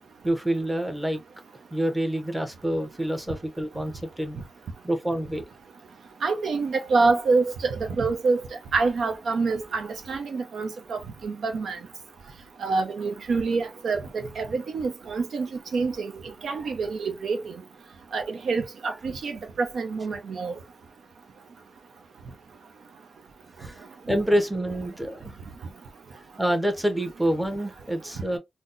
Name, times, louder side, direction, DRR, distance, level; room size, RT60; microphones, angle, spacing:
voice 1, 0.2-1.2 1.7-4.4 4.8-5.4 23.6-25.4 26.4-28.4, right 1 dB, 5° right, 0.7 m, -27 dB
voice 2, 6.2-8.4 8.7-11.8 12.6-17.5 18.1-20.6, right 4 dB, 85° right, 0.6 m, -26 dB
4.0 x 2.0 x 2.5 m
wide cardioid pair, 115°, 0 cm